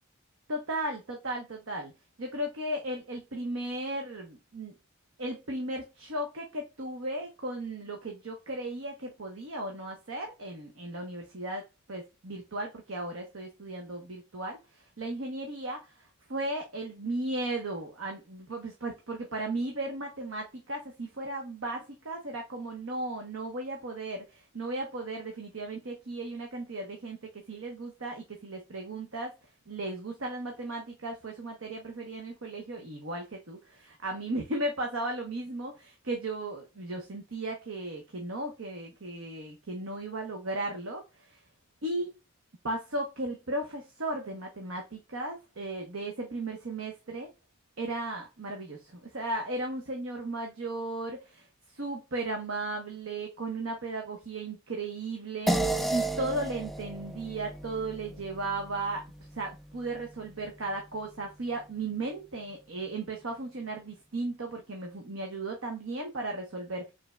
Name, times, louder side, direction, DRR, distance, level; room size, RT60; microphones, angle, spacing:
voice 1, 0.5-1.9 2.2-4.7 5.2-11.6 11.9-29.3 29.7-41.4 41.8-42.1 42.6-47.3 47.8-59.1 59.3-66.9, right 2 dB, 65° right, 2 dB, 1.0 m, -36 dB
sound 1, 55.5-60.2, right 2 dB, ahead, 0.3 m, -33 dB
5.2 x 3.7 x 2.3 m, 0.26 s
head